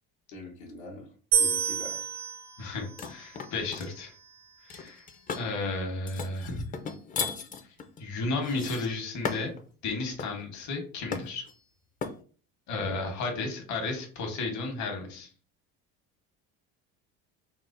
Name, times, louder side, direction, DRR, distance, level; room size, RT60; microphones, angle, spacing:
voice 1, 0.3-1.1 1.4-2.0, left 1 dB, 85° left, -3 dB, 1.0 m, -43 dB
sound 1, 1.3-4.5, right 7 dB, 80° right, 0.9 m, -31 dB
voice 2, 2.6-4.1 4.7-5.0 5.3-6.6 8.0-9.5 9.8-11.5 12.7-15.3, left 3 dB, 60° left, 2 dB, 1.1 m, -33 dB
sound 2, 3.0-3.9 4.7-5.5 6.1-9.6 10.2-10.4 11.1-11.5 12.0-12.2, left 5 dB, 25° left, 0.4 m, -36 dB
4.2 x 2.0 x 2.5 m, 0.41 s
supercardioid pair, 110°, 33 cm